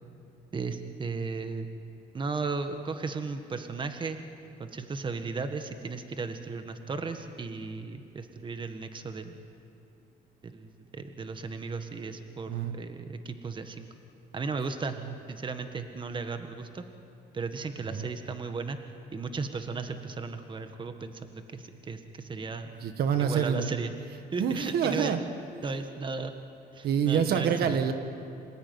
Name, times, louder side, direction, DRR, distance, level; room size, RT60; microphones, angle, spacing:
voice 1, 0.5-1.7 2.1-4.2 4.6-9.4 10.4-13.9 14.3-15.0 15.3-16.8 17.3-18.8 19.1-22.7 23.2-23.9 24.3-25.1 25.6-26.3 26.7-27.8, right 4 dB, 30° right, 8 dB, 1.6 m, -35 dB
voice 2, 22.8-23.7 24.4-25.2 26.8-27.9, right 7 dB, 65° right, 8 dB, 1.6 m, -26 dB
27.0 x 19.0 x 9.6 m, 2.6 s
cardioid pair, 110°, 17 cm